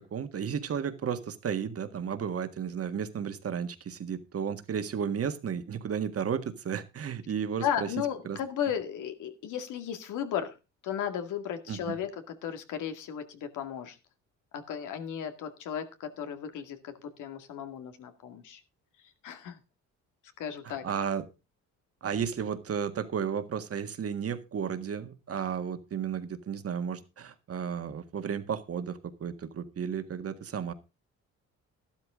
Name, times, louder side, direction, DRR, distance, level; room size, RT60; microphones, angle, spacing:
voice 1, 0.1-7.9 8.3-8.4 11.7-12.0 20.6-21.2 22.0-30.7, right 7 dB, 50° right, 9 dB, 1.8 m, -33 dB
voice 2, 7.6-10.6 10.8-14.0 14.5-18.6 19.2-19.6 20.4-20.8, left 9 dB, 85° left, 7 dB, 2.2 m, -35 dB
12.5 x 12.0 x 3.7 m, 0.29 s
cardioid pair, 90°, 30 cm